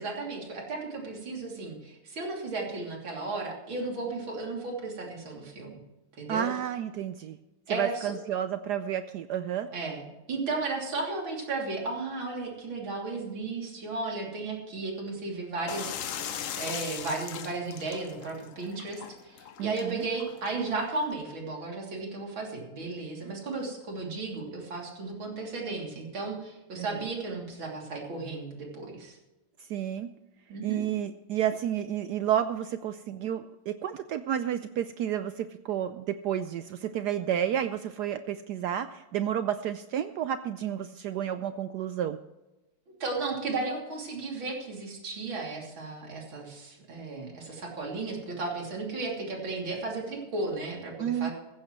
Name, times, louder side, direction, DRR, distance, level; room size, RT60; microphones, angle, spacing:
voice 1, 0.0-5.8 6.2-6.5 7.7-8.1 9.7-29.2 30.5-30.9 43.0-51.3, right 3 dB, 65° right, -1 dB, 3.7 m, -34 dB
voice 2, 6.3-7.4 7.7-9.7 19.6-20.0 26.8-27.0 29.7-30.1 30.6-42.2 51.0-51.3, right 10 dB, 85° right, 10 dB, 0.9 m, -31 dB
sound 1, 15.7-21.1, left 9 dB, 85° left, 0.7 m, -40 dB
15.5 x 15.5 x 3.1 m, 1.0 s
omnidirectional pair, 2.4 m